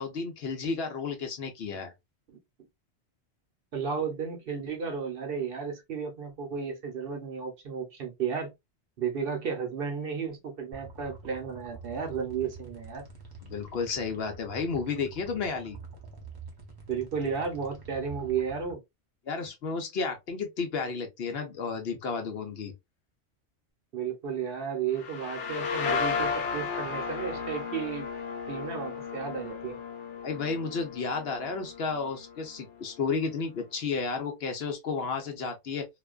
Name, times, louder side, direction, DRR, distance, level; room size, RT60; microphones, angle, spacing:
voice 1, 0.0-1.9 13.4-15.8 19.3-22.7 30.2-35.9, left 5 dB, 65° left, 0.9 m, -32 dB
voice 2, 3.7-8.5 9.0-13.0 16.9-18.8 23.9-28.1 28.5-29.8, right 6 dB, 60° right, 0.9 m, -33 dB
sound 1, 10.7-18.7, right 3 dB, 30° right, 0.5 m, -46 dB
sound 2, 24.9-32.5, left 5 dB, 90° left, 1.0 m, -34 dB
2.5 x 2.2 x 2.3 m
omnidirectional pair, 1.2 m